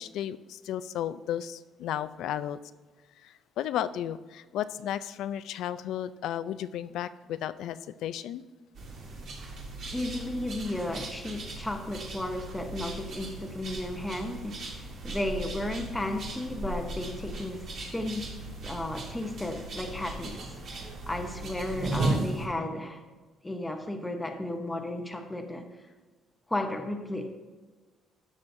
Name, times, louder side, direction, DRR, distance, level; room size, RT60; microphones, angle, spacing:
voice 1, 0.0-2.6 3.2-8.4, left 11 dB, 75° left, 14 dB, 0.3 m, -34 dB
sound 1, 8.7-22.5, right 2 dB, 50° right, 1.7 m, -37 dB
voice 2, 9.9-18.3 18.6-20.4 20.7-23.0 23.4-25.7 26.5-27.3, left 1 dB, 10° left, 4 dB, 0.7 m, -34 dB
13.0 x 6.2 x 2.6 m, 1.3 s
cardioid pair, 160°, 0 cm